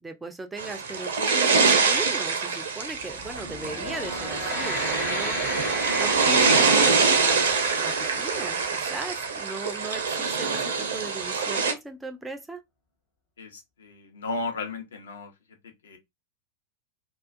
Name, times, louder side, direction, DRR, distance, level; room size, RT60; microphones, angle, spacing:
voice 1, 0.0-5.4 5.9-7.5 7.7-12.6, right 2 dB, 10° right, 0.4 m, -38 dB
sound 1, 0.6-11.7, right 5 dB, 65° right, 0.5 m, -24 dB
sound 2, 3.1-9.7, left 1 dB, 40° left, 1.2 m, -35 dB
voice 2, 13.4-15.3 15.6-16.0, left 3 dB, 65° left, 0.7 m, -35 dB
2.3 x 2.3 x 2.4 m
figure-of-eight pair, 90°, 0 cm